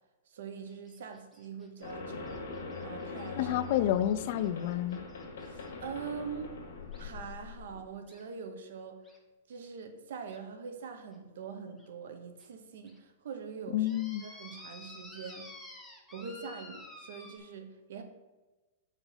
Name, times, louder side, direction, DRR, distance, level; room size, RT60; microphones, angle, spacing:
voice 1, 0.3-2.5 2.8-3.5 5.4-6.6 7.0-9.0 9.5-13.9 14.2-15.5 16.1-18.0, right 6 dB, 70° right, 6 dB, 1.0 m, -43 dB
sound 1, 0.7-5.7 6.9-7.0 8.1-8.2 9.0-9.2 9.6-9.7 10.3-10.4 11.1-11.2 11.8-11.9 12.4-12.5 12.9-13.0 13.9-17.4, left 2 dB, 5° left, 0.8 m, -52 dB
sound 2, 1.8-7.9, left 4 dB, 75° left, 1.7 m, -42 dB
voice 2, 3.4-5.0 13.7-14.2, left 12 dB, 45° left, 13 dB, 0.4 m, -29 dB
6.6 x 4.5 x 5.8 m, 1.2 s
supercardioid pair, 170°, 0 cm